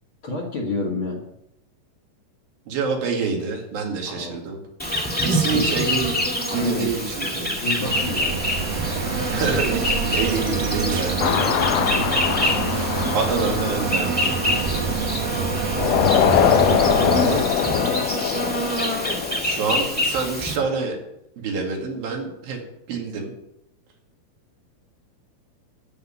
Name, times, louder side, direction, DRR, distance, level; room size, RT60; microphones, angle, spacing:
voice 1, 0.2-1.2 4.1-4.4 5.4-5.7 6.5-6.9 7.5-8.5 16.2-18.0, left 2 dB, 45° left, 0 dB, 2.0 m, -30 dB
voice 2, 2.7-4.6 5.2-7.5 9.3-11.4 13.1-14.3 19.4-21.0 21.4-22.6 22.9-23.3, right 5 dB, 85° right, 1 dB, 4.0 m, -27 dB
Insect, 4.8-20.6, equal, 5° left, 0.8 m, -26 dB
sound 1, 7.8-17.4, right 5 dB, 65° right, 1.6 m, -27 dB
sound 2, 11.2-15.2 15.7-19.9, left 10 dB, 75° left, 2.2 m, -23 dB
13.5 x 5.8 x 8.9 m, 0.81 s
omnidirectional pair, 4.0 m